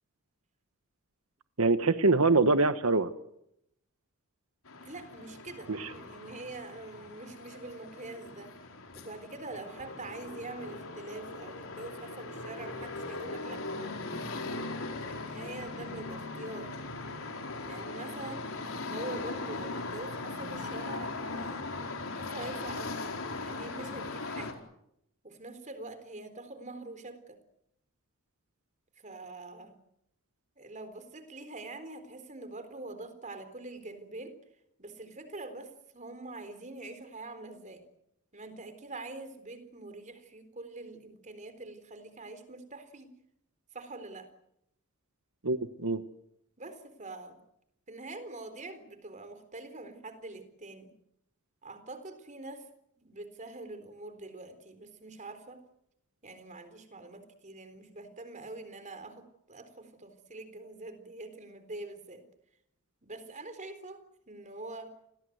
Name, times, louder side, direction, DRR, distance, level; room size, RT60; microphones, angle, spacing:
voice 1, 1.6-3.1 5.7-5.9 45.4-46.0, right 3 dB, 85° right, 10 dB, 1.3 m, -24 dB
sound 1, 4.7-24.5, left 3 dB, 75° left, 4.7 m, -39 dB
voice 2, 4.8-8.5 8.9-13.6 15.0-16.7 17.6-18.5 18.9-21.7 22.0-23.1 23.4-24.6 25.2-27.4 29.0-29.8 30.6-34.4 34.8-37.8 38.3-43.1 43.7-44.3 46.6-47.4 47.9-50.9 51.6-52.7 53.0-55.6 56.2-62.2 63.0-64.9, right 2 dB, 35° right, 10 dB, 3.9 m, -44 dB
29.5 x 21.0 x 8.0 m, 0.79 s
head